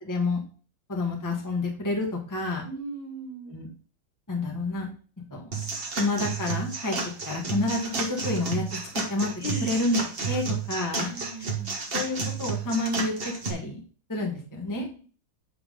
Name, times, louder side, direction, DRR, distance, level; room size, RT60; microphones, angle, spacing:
voice 1, 0.0-0.4 0.9-2.6 3.5-3.7 4.3-4.9 5.3-5.4 6.0-7.0 7.2-9.3 9.6-10.0 10.3-11.1 11.9-13.8 14.1-14.9, left 2 dB, 10° left, 0 dB, 1.2 m, -29 dB
voice 2, 2.6-3.6 9.4-9.7 10.3-10.4 11.0-11.8 14.5-15.0, right 2 dB, 70° left, -5 dB, 4.6 m, -38 dB
sound 1, 5.5-13.5, right 4 dB, 35° right, 1.1 m, -31 dB
8.8 x 3.7 x 5.0 m, 0.39 s
omnidirectional pair, 2.3 m